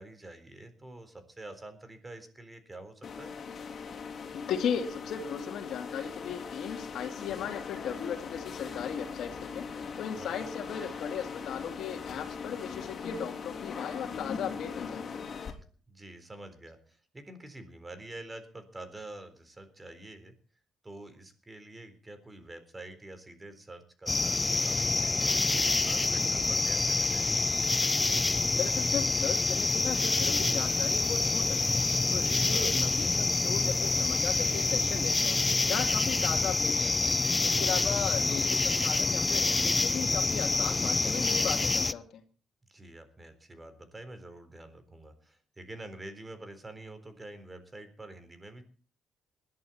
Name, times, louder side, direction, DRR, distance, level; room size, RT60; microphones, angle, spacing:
voice 1, 0.0-3.4 10.2-10.5 15.9-20.3 20.8-27.4 32.5-32.8 37.6-37.9 42.7-48.6, right 2 dB, 20° right, 10 dB, 3.9 m, -47 dB
sound 1, 3.0-15.5, left 5 dB, 50° left, 3.9 m, -40 dB
voice 2, 4.3-9.6 10.0-15.2 28.5-31.8 32.1-35.4 35.7-37.1 37.4-42.2, left 8 dB, 75° left, 5 dB, 2.3 m, -37 dB
sound 2, 24.1-41.9, left 3 dB, 25° left, 0.7 m, -27 dB
20.5 x 11.5 x 4.3 m, 0.40 s
cardioid pair, 90°, 0 cm